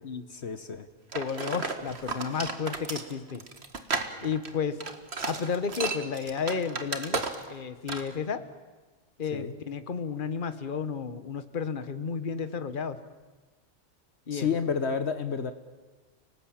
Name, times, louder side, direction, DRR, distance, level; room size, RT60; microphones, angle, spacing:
voice 1, 0.3-0.9 9.3-9.5 14.3-15.5, left 6 dB, 60° left, 9 dB, 1.4 m, -30 dB
voice 2, 1.1-3.4 4.2-4.8 5.3-7.2 7.5-8.4 9.2-13.0 14.3-14.5, left 6 dB, 45° left, 11 dB, 1.4 m, -32 dB
sound 1, 1.1-7.6 7.9-8.1, right 4 dB, 60° right, 2.0 m, -34 dB
30.0 x 19.0 x 8.9 m, 1.3 s
omnidirectional pair, 1.3 m